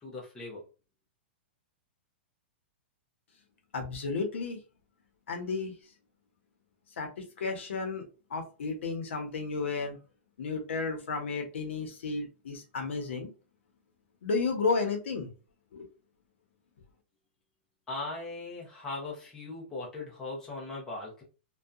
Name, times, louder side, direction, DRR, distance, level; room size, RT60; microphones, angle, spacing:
voice 1, 0.0-0.6 17.9-21.2, left 2 dB, 10° left, -4 dB, 0.6 m, -39 dB
voice 2, 3.7-4.6 5.3-5.7 7.0-8.0 8.3-10.0 10.4-13.3 14.2-15.3 15.7-15.9, left 4 dB, 90° left, 4 dB, 0.8 m, -32 dB
2.7 x 2.3 x 2.4 m, 0.32 s
supercardioid pair, 170°, 6 cm